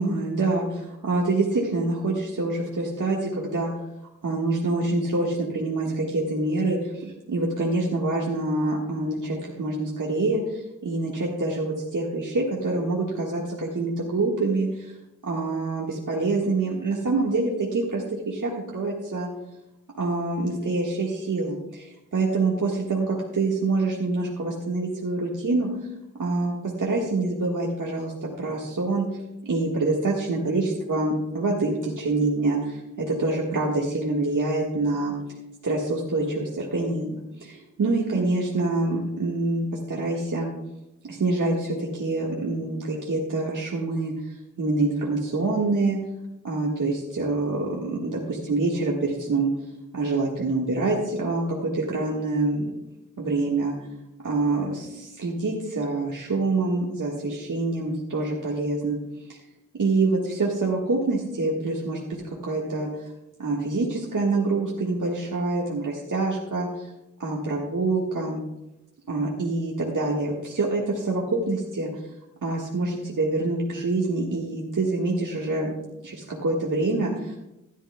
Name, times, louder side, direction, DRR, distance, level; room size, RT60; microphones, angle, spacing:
voice 1, 0.0-3.7 4.2-15.0 15.2-19.3 20.0-23.0 23.3-25.9 26.2-35.2 35.6-40.5 41.0-46.0 46.4-49.5 49.9-52.6 53.2-53.7 54.2-59.0 59.8-62.0 62.3-63.1 63.4-66.9 67.2-68.4 69.1-72.0 72.4-75.7 76.0-77.4, right 2 dB, 80° right, -3 dB, 1.6 m, -26 dB
15.5 x 11.0 x 2.2 m, 0.92 s
cardioid pair, 45°, 31 cm